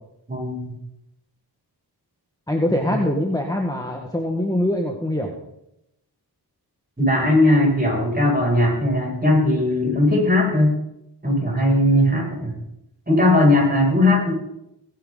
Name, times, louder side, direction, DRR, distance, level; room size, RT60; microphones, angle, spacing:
voice 1, 0.3-0.8 2.8-3.0 7.0-10.7 11.2-12.6 13.1-14.3, left 1 dB, 20° right, -3 dB, 7.1 m, -18 dB
voice 2, 2.5-5.3, left 1 dB, 10° left, 1 dB, 1.8 m, -23 dB
19.5 x 10.5 x 4.1 m, 0.82 s
wide cardioid pair, 70°, 39 cm